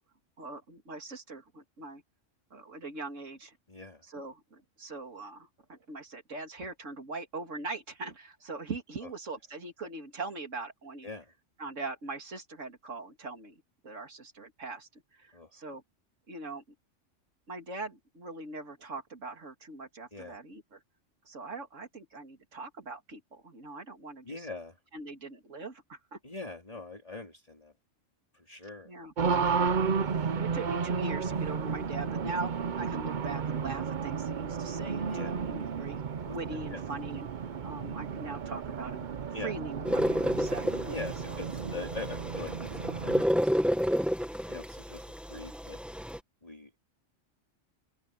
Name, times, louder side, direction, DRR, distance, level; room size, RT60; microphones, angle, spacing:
voice 1, 0.4-2.0 2.5-3.6 4.0-11.1 11.6-13.6 13.8-15.8 16.3-16.6 17.5-20.8 21.2-24.5 24.9-26.2 28.9-29.1 30.3-37.3 37.6-39.1 39.4-40.6 41.3-41.4, right 3 dB, 80° right, 2.9 m, -41 dB
voice 2, 3.7-4.0 9.0-9.1 11.0-11.3 15.3-15.5 20.1-20.4 24.2-24.8 26.2-27.7 28.3-29.7 35.1-35.4 36.2-36.4 36.7-36.8 39.3-39.5 40.9-43.8 44.5-45.8 46.4-46.8, left 3 dB, 30° left, 3.3 m, -43 dB
Race car auto racing, 29.2-43.2, right 6 dB, 45° right, 0.8 m, -33 dB
sound 1, 39.8-46.2, equal, ahead, 1.4 m, -30 dB
open air
omnidirectional pair, 1.3 m